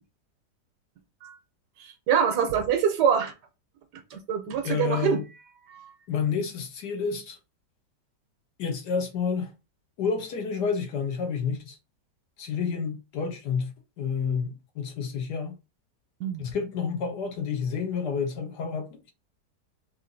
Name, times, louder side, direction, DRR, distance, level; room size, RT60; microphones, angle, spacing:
voice 1, 1.8-3.3 4.1-5.2 5.7-5.9 16.2-16.5, right 7 dB, 70° right, 1.3 m, -25 dB
voice 2, 4.6-5.2 6.1-7.4 8.6-9.5 10.0-11.8 12.4-15.5 16.4-19.1, left 6 dB, 70° left, 1.4 m, -29 dB
4.3 x 2.6 x 3.8 m
omnidirectional pair, 1.9 m